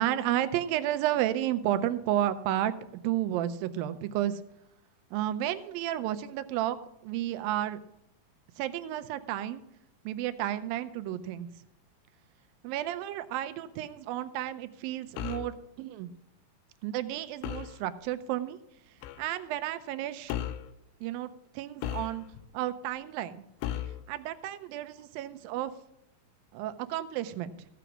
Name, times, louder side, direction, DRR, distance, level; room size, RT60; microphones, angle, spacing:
voice 1, 0.0-2.7 3.0-4.4 5.1-6.8 7.0-7.8 8.6-9.6 10.1-11.5 12.6-16.1 16.8-18.6 19.2-20.4 21.0-21.3 21.5-22.3 22.5-23.4 24.1-25.7 26.5-27.5, right 12 dB, 85° right, 11 dB, 2.4 m, -32 dB
sound 1, 15.2-15.6 17.4-17.8 19.0-19.3 20.3-20.7 21.8-22.5 23.6-24.0, left 11 dB, 85° left, 2.5 m, -35 dB
15.0 x 6.0 x 6.0 m, 0.82 s
omnidirectional pair, 4.0 m